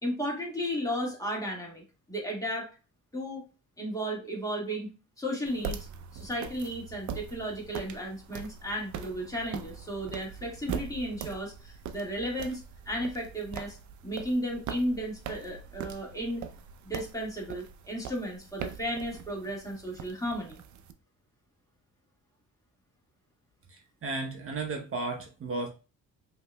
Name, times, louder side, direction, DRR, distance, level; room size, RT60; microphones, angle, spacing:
voice 1, 0.0-2.8 3.1-3.4 3.8-4.9 5.2-5.8 6.1-13.8 14.0-16.4 16.8-20.6, equal, 10° left, -1 dB, 1.8 m, -34 dB
sound 1, 5.5-20.9, right 7 dB, 70° right, 0.6 m, -42 dB
voice 2, 23.7-25.7, right 3 dB, 45° right, 2 dB, 0.9 m, -34 dB
5.2 x 3.0 x 2.2 m, 0.32 s
cardioid pair, 90°, 30 cm